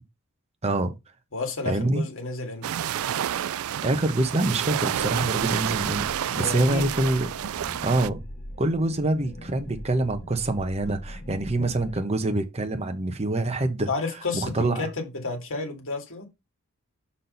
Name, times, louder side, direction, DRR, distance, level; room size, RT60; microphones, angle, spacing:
voice 1, 0.6-0.9 1.7-2.0 3.8-7.3 7.8-8.2 8.6-13.9 14.3-14.9, right 2 dB, 30° right, 1.0 m, -25 dB
voice 2, 1.3-2.7 6.4-6.9 13.9-16.3, left 3 dB, 65° left, 2.3 m, -31 dB
sound 1, 2.6-8.1, right 10 dB, 70° right, 0.4 m, -29 dB
sound 2, 4.9-12.0, left 1 dB, 40° left, 0.9 m, -42 dB
6.1 x 4.3 x 5.3 m
head